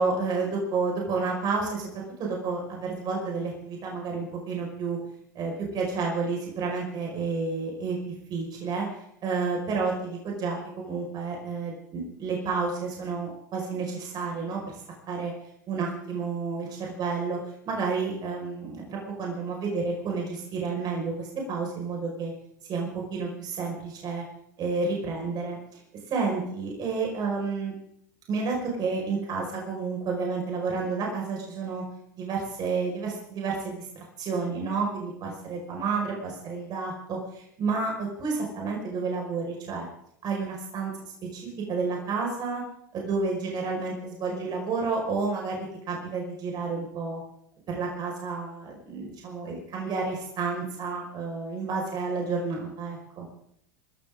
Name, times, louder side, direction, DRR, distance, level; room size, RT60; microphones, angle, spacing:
voice 1, 0.0-5.0 5.4-8.0 8.3-8.9 9.2-15.3 15.7-17.4 17.7-22.3 22.7-24.2 24.6-25.8 26.1-27.7 28.3-31.8 32.1-33.9 34.2-39.9 40.2-40.9 41.3-42.6 42.9-47.2 47.7-53.3, right 4 dB, 40° right, -1 dB, 5.3 m, -30 dB
26.0 x 13.5 x 3.8 m, 0.70 s
hypercardioid pair, 90°, 10 cm